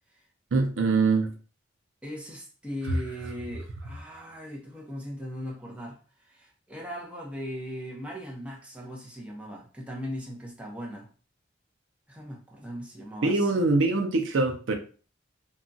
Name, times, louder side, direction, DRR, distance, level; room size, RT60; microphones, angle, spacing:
voice 1, 0.5-1.3 13.2-14.7, right 3 dB, 75° right, 0.5 m, -23 dB
voice 2, 2.0-11.1 12.1-13.7, equal, 5° right, 0.7 m, -39 dB
2.8 x 2.3 x 2.6 m
head